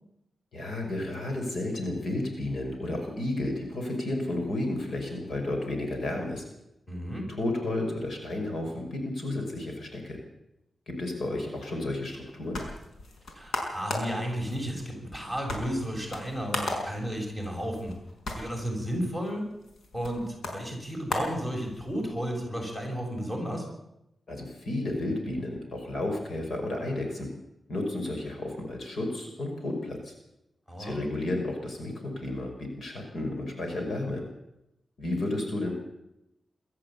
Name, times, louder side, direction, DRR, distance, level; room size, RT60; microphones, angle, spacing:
voice 1, 0.5-6.4 7.4-10.2 10.9-12.6 24.3-27.3 27.7-30.1 30.8-34.2 35.0-35.7, left 2 dB, 65° left, 3 dB, 5.5 m, -32 dB
voice 2, 6.9-7.3 13.3-17.9 18.4-19.5 19.9-23.7 30.7-31.0, equal, 15° left, 1 dB, 7.0 m, -33 dB
sound 1, 12.1-22.1, left 2 dB, 90° left, 5.4 m, -38 dB
23.0 x 13.5 x 8.5 m, 0.86 s
wide cardioid pair, 120°, 0 cm